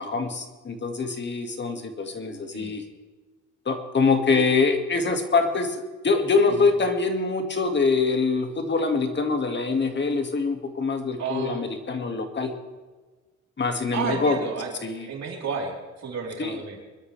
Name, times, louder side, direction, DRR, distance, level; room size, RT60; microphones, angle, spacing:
voice 1, 0.0-2.8 3.7-12.5 13.6-14.4 14.8-15.1 16.4-16.6, left 4 dB, 35° left, 5 dB, 2.0 m, -24 dB
voice 2, 11.2-11.6 13.9-14.7 15.0-16.8, right 5 dB, 60° right, 0 dB, 3.8 m, -32 dB
24.0 x 12.5 x 3.3 m, 1.3 s
cardioid pair, 90°, 30 cm